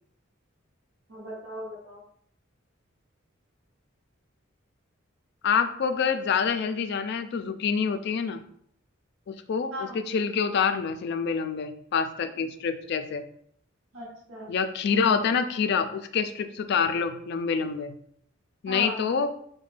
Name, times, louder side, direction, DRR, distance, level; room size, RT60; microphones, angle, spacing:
voice 1, 1.1-2.0 9.7-10.0 13.9-14.5 18.7-19.1, equal, 85° right, -3 dB, 0.8 m, -37 dB
voice 2, 5.4-8.4 9.3-13.2 14.5-17.9 18.6-19.3, left 6 dB, 55° left, 9 dB, 0.3 m, -26 dB
4.2 x 2.1 x 3.3 m, 0.66 s
head